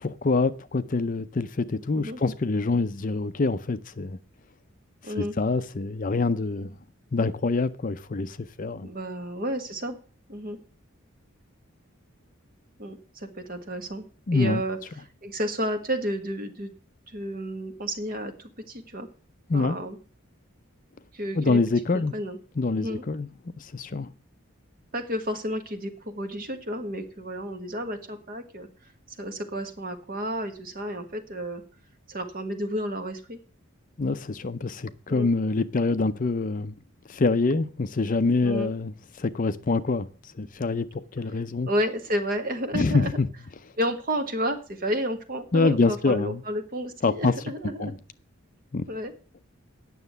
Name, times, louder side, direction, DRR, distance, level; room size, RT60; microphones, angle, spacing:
voice 1, 0.0-4.2 5.2-6.7 7.1-8.9 14.3-14.6 19.5-19.7 21.4-22.1 22.6-23.3 23.6-24.1 34.0-36.7 37.1-38.9 39.2-40.1 40.4-41.7 42.7-43.3 45.5-46.4 47.0-47.3 47.8-47.9 48.7-48.9, left 3 dB, 40° left, 0.5 m, -25 dB
voice 2, 5.0-5.4 8.8-10.0 10.3-10.6 12.8-14.1 14.3-14.8 15.2-16.7 17.1-19.1 19.5-20.0 21.1-21.6 21.9-22.4 22.8-23.0 24.9-28.7 29.2-31.6 32.1-33.4 35.1-35.3 38.4-38.7 41.7-43.1 43.8-47.9 48.9-49.1, equal, 45° right, 1.6 m, -31 dB
9.4 x 6.6 x 8.0 m
head